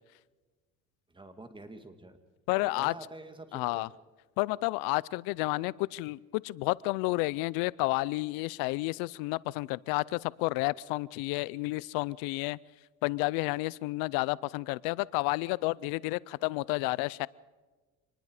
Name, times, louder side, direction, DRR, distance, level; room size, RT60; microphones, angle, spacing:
voice 1, 1.1-2.2 2.6-3.9 4.5-4.6, right 2 dB, 15° right, 7 dB, 2.6 m, -47 dB
voice 2, 2.5-2.9 3.5-3.9 4.4-12.6 13.0-17.3, left 22 dB, 90° left, 23 dB, 0.6 m, -31 dB
26.5 x 20.5 x 4.9 m, 1.3 s
cardioid pair, 100°, 35 cm